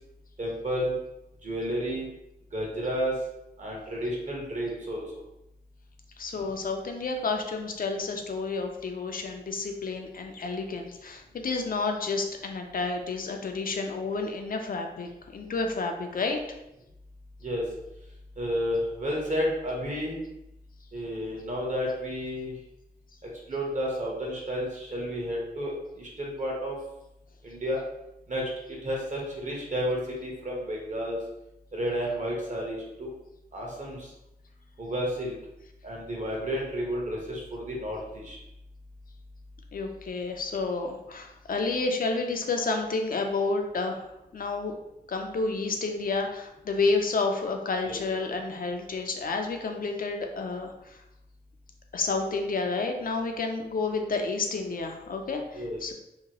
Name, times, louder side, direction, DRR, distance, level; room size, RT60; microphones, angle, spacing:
voice 1, 0.4-1.0 1.4-2.1 2.5-3.1 3.6-5.0 17.4-17.6 18.4-20.2 20.9-22.5 23.5-26.8 27.4-27.8 28.3-31.2 31.7-33.1 33.5-34.1 34.8-35.3 35.8-38.4 47.9-48.0 55.5-55.8, equal, 50° right, -2 dB, 0.9 m, -31 dB
voice 2, 6.2-16.4 39.7-44.1 44.3-44.7 45.1-51.0 51.9-55.9, left 3 dB, 60° left, 4 dB, 0.4 m, -30 dB
2.8 x 2.2 x 2.8 m, 0.87 s
wide cardioid pair, 95°, 17 cm